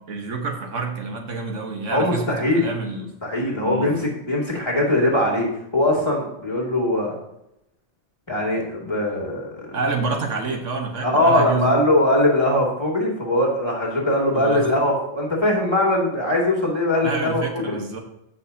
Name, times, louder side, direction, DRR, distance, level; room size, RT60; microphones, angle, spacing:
voice 1, 0.0-2.2 2.5-3.1 3.6-3.9 9.7-11.7 14.3-14.7 17.0-18.0, right 4 dB, 85° right, 3 dB, 1.6 m, -28 dB
voice 2, 1.9-2.7 3.2-5.5 5.7-7.1 8.3-9.7 11.0-17.8, left 1 dB, 20° left, -2 dB, 2.6 m, -21 dB
14.5 x 6.3 x 2.9 m, 0.80 s
omnidirectional pair, 1.2 m